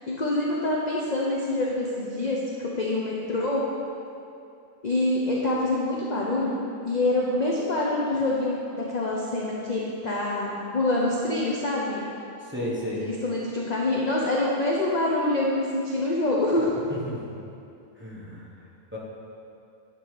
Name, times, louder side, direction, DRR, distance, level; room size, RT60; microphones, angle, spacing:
voice 1, 0.1-3.6 4.8-6.6 6.8-12.0 13.0-16.7, left 2 dB, 40° left, -4 dB, 0.6 m, -26 dB
voice 2, 12.4-13.0 16.9-17.4 18.0-18.5 18.9-19.0, equal, 10° right, -7 dB, 1.1 m, -33 dB
10.0 x 3.9 x 5.0 m, 2.6 s
omnidirectional pair, 1.5 m